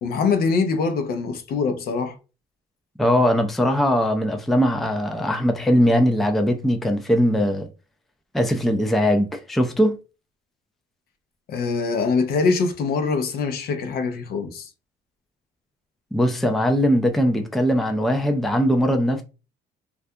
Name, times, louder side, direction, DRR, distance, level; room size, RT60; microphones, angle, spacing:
voice 1, 0.0-2.2 11.5-14.7, left 4 dB, 65° left, 0.5 m, -23 dB
voice 2, 3.0-7.7 8.3-10.0 16.1-19.2, equal, ahead, 0.3 m, -20 dB
2.3 x 2.2 x 2.6 m
cardioid pair, 110°, 17 cm